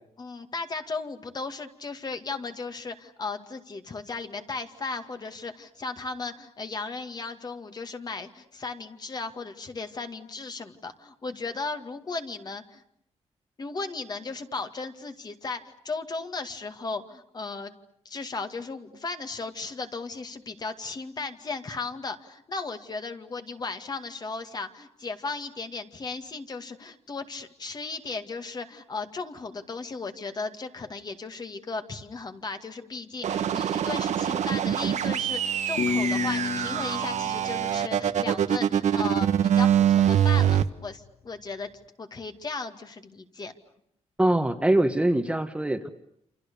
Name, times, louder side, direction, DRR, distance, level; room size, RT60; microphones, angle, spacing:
voice 1, 0.2-12.8 13.6-17.8 18.1-41.7 42.0-43.5, left 4 dB, 35° left, 7 dB, 2.2 m, -36 dB
sound 1, 33.2-40.6, right 9 dB, 75° right, 1.4 m, -24 dB
sound 2, 35.8-38.7, left 6 dB, 60° left, 1.2 m, -31 dB
voice 2, 44.2-45.9, right 1 dB, 10° right, 7 dB, 1.5 m, -23 dB
28.5 x 28.0 x 7.0 m, 0.73 s
wide cardioid pair, 150°, 12 cm